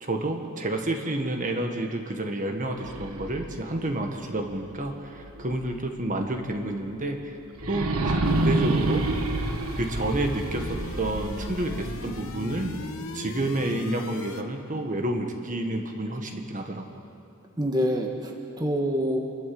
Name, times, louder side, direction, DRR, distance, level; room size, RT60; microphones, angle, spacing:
voice 1, 0.0-7.4 7.7-9.1 9.8-12.8 13.1-16.9, right 1 dB, 40° right, 4 dB, 1.5 m, -29 dB
sound 1, 2.6-5.6 6.1-6.2 7.5-12.6, right 2 dB, 80° right, 1.4 m, -29 dB
sound 2, 8.2-14.4, left 2 dB, 70° left, 1.1 m, -38 dB
voice 2, 17.6-19.2, equal, 20° right, 1 dB, 1.4 m, -26 dB
28.5 x 12.5 x 7.7 m, 2.7 s
head